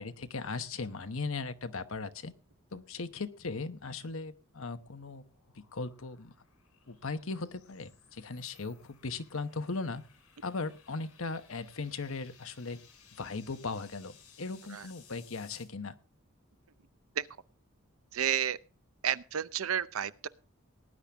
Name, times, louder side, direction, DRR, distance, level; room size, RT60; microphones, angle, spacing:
voice 1, 0.0-2.3 2.7-5.3 5.5-6.3 6.9-10.0 10.4-12.8 13.2-16.0, left 3 dB, 65° left, 10 dB, 1.0 m, -38 dB
sound 1, 4.3-15.6, left 7 dB, 90° left, 4.7 m, -61 dB
voice 2, 18.1-18.6 19.0-20.3, right 9 dB, 70° right, 16 dB, 0.6 m, -31 dB
18.5 x 10.0 x 3.5 m, 0.33 s
head